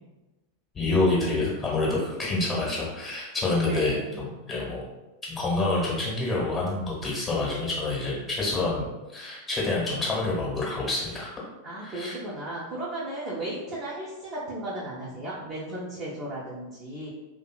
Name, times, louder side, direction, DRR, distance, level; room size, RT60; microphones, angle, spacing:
voice 1, 0.7-4.8 5.3-11.3 11.8-12.1, left 2 dB, 20° left, -5 dB, 1.0 m, -27 dB
voice 2, 3.7-4.2 11.6-17.1, right 1 dB, 25° right, -7 dB, 0.6 m, -35 dB
2.6 x 2.6 x 2.2 m, 1.1 s
figure-of-eight pair, 90°, 0 cm